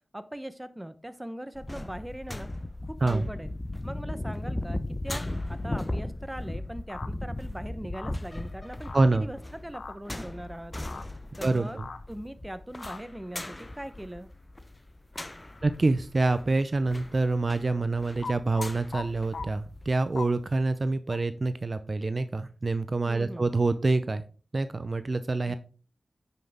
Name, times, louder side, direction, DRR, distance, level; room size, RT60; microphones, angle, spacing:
voice 1, 0.1-2.5 2.9-3.5 3.8-5.2 5.5-10.7 11.4-11.8 12.1-14.3 23.1-23.5, right 1 dB, 10° right, 12 dB, 0.8 m, -40 dB
sound 1, 1.5-19.9 20.3-20.4, left 1 dB, 25° left, 0.7 m, -37 dB
sound 2, 6.9-7.1 7.9-8.1 8.9-9.0 9.7-9.9 10.9-11.0 11.8-12.0 12.8-13.0 18.2-19.0 19.3-19.5 20.2-20.3 21.1-21.2, left 4 dB, 70° left, 0.8 m, -38 dB
voice 2, 8.9-9.3 11.4-11.8 15.6-24.2 24.5-25.6, right 3 dB, 45° right, 12 dB, 0.6 m, -26 dB
9.3 x 5.8 x 3.5 m, 0.37 s
cardioid pair, 50°, 0 cm